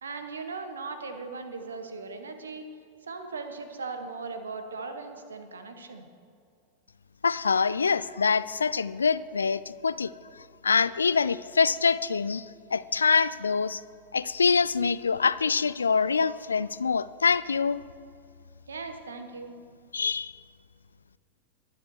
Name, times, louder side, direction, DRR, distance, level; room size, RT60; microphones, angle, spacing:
voice 1, 0.0-2.7 3.1-6.0 18.7-19.6, right 4 dB, 70° right, 7 dB, 1.2 m, -38 dB
voice 2, 7.2-10.1 10.6-12.5 12.7-13.8 14.1-17.8 19.9-20.3, left 5 dB, 75° left, 17 dB, 0.3 m, -25 dB
21.5 x 7.3 x 4.6 m, 2.4 s
figure-of-eight pair, 90°, 0 cm